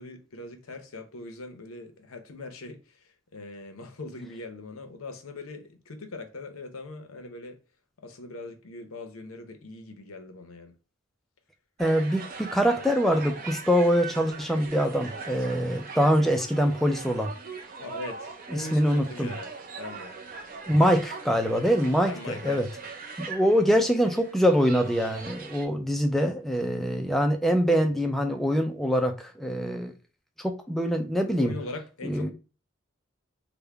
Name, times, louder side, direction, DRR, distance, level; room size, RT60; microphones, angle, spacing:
voice 1, 0.0-7.6 8.0-10.7 17.8-19.5 19.8-20.1 22.1-22.6 31.4-32.3, left 3 dB, 90° left, 0.7 m, -41 dB
voice 2, 11.8-17.3 18.5-19.3 20.7-22.7 23.2-29.9 30.4-31.5 32.0-32.3, equal, ahead, 0.3 m, -24 dB
sound 1, 11.8-25.7, right 4 dB, 45° right, 0.6 m, -41 dB
3.5 x 2.1 x 3.3 m
head